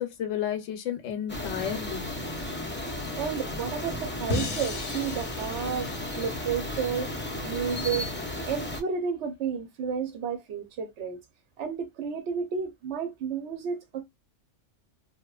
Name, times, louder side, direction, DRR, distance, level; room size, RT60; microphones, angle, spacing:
voice 1, 0.0-2.1, left 9 dB, 75° left, 0.9 m, -32 dB
sound 1, 1.3-8.8, left 1 dB, 15° left, 0.3 m, -34 dB
voice 2, 3.1-5.9 6.1-7.1 7.4-8.1 8.4-11.2 11.6-14.0, right 6 dB, 65° right, 0.8 m, -31 dB
sound 2, 4.3-7.4, left 4 dB, 50° left, 0.8 m, -37 dB
2.8 x 2.3 x 2.2 m
omnidirectional pair, 1.3 m